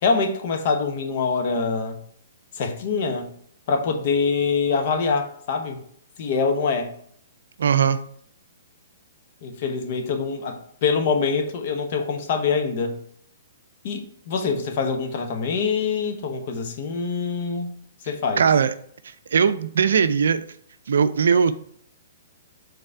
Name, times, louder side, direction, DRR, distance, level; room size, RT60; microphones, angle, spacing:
voice 1, 0.0-2.0 2.5-3.3 3.7-5.8 6.2-6.9 9.4-13.0 13.8-17.7 18.1-18.5, left 5 dB, 50° left, 5 dB, 1.0 m, -24 dB
voice 2, 7.6-8.0 18.4-18.7 19.3-20.4 20.9-21.5, right 6 dB, 70° right, 12 dB, 0.4 m, -19 dB
5.4 x 4.0 x 4.7 m, 0.63 s
hypercardioid pair, 120°, 0 cm